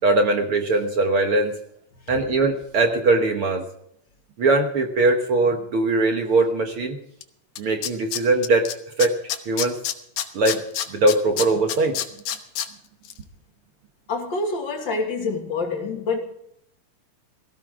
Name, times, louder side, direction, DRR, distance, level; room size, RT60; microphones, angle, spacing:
voice 1, 0.0-1.6 2.1-3.7 4.4-7.0 7.6-8.7 9.0-9.2 9.5-9.8 10.3-10.6 10.9-12.0, right 2 dB, 55° right, 1.7 m, -20 dB
Tools, 7.2-7.3 7.6-8.7 9.0-12.7 13.0-13.1, left 11 dB, 80° left, 2.6 m, -27 dB
voice 2, 14.1-16.2, left 3 dB, 35° left, 2.8 m, -26 dB
17.5 x 16.0 x 3.8 m
omnidirectional pair, 3.8 m